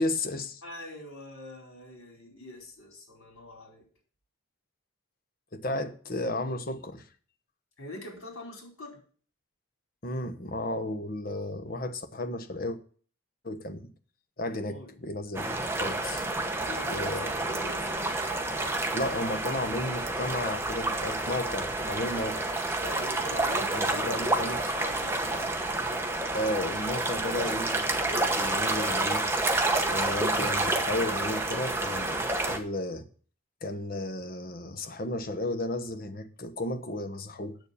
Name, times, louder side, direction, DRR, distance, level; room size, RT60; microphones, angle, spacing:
voice 1, 0.0-0.6 5.5-7.1 10.0-12.8 13.4-13.8 14.4-16.2 16.9-17.3 18.9-22.5 23.7-24.6 26.3-29.3 29.9-33.1 33.6-37.6, left 1 dB, 40° left, 1.0 m, -33 dB
voice 2, 0.6-3.8 7.8-9.0 14.5-14.9 16.6-18.3 22.8-25.5, left 1 dB, 75° left, 4.5 m, -43 dB
sound 1, 15.3-32.6, right 2 dB, 10° right, 0.9 m, -29 dB
7.9 x 7.0 x 7.0 m
head